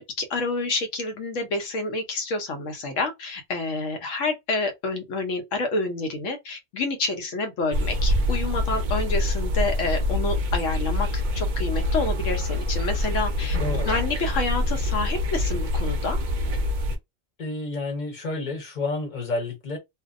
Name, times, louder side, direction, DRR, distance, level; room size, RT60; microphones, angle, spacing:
voice 1, 0.0-16.2, left 3 dB, 85° left, 1.1 m, -28 dB
sound 1, 7.7-17.0, left 1 dB, 60° right, 0.5 m, -25 dB
voice 2, 13.6-14.0 17.4-19.8, left 3 dB, 45° left, 0.9 m, -30 dB
2.6 x 2.1 x 2.4 m
omnidirectional pair, 1.3 m